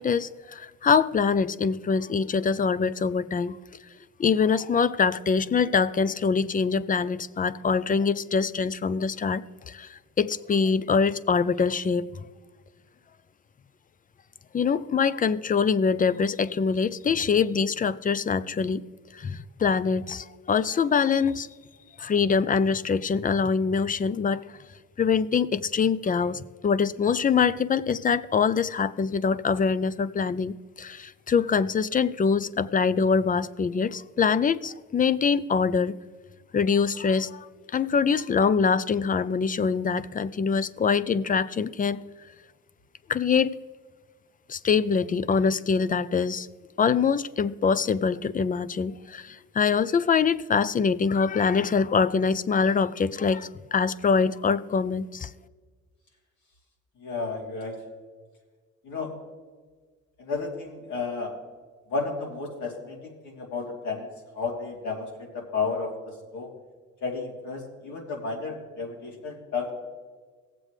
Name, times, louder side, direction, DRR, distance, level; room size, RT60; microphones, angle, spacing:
voice 1, 0.0-3.6 4.2-9.9 10.2-12.1 14.5-18.8 19.2-21.5 22.0-24.4 25.0-36.0 36.5-37.5 37.7-42.0 43.1-43.5 44.5-46.5 46.8-55.3, left 5 dB, 30° left, 0.5 m, -24 dB
voice 2, 57.0-57.8 58.8-59.1 60.2-61.3 61.9-66.5 67.0-69.7, left 4 dB, 75° left, 3.0 m, -32 dB
18.0 x 7.6 x 3.2 m
cardioid pair, 90°, 30 cm